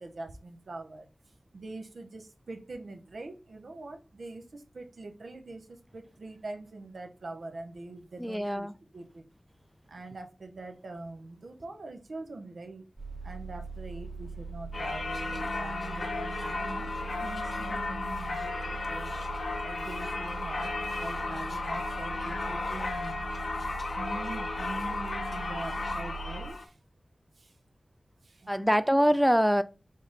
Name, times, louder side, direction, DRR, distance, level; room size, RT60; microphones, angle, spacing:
voice 1, 0.0-8.7 8.9-9.2 9.9-12.8 13.2-19.2 19.6-23.3 23.6-26.8 27.4-27.6 28.2-29.0, right 2 dB, 85° right, 0.8 m, -43 dB
voice 2, 8.2-8.7 28.5-29.6, equal, 5° right, 0.4 m, -24 dB
sound 1, 13.0-26.5, right 4 dB, 45° right, 1.2 m, -41 dB
Singing / Church bell, 14.7-26.6, left 3 dB, 80° left, 0.9 m, -34 dB
5.2 x 2.6 x 3.9 m
cardioid pair, 45°, 0 cm